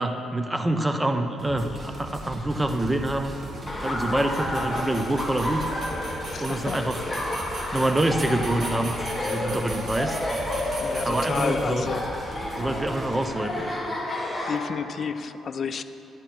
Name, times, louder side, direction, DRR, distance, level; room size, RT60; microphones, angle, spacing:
voice 1, 0.0-3.3 3.8-5.7 6.4-7.0 7.7-10.2 11.0-11.9 12.6-13.6, right 1 dB, 15° right, 6 dB, 0.8 m, -26 dB
sound 1, 1.4-13.3, right 1 dB, 40° right, 2.5 m, -39 dB
sound 2, 2.9-12.0, right 3 dB, 60° right, 1.6 m, -41 dB
Laughter, 3.7-14.6, left 1 dB, 15° left, 1.6 m, -31 dB
voice 2, 6.3-6.8 10.8-12.1 14.5-15.8, left 6 dB, 50° left, 11 dB, 0.4 m, -31 dB
10.5 x 10.0 x 4.4 m, 2.7 s
cardioid pair, 90°, 0 cm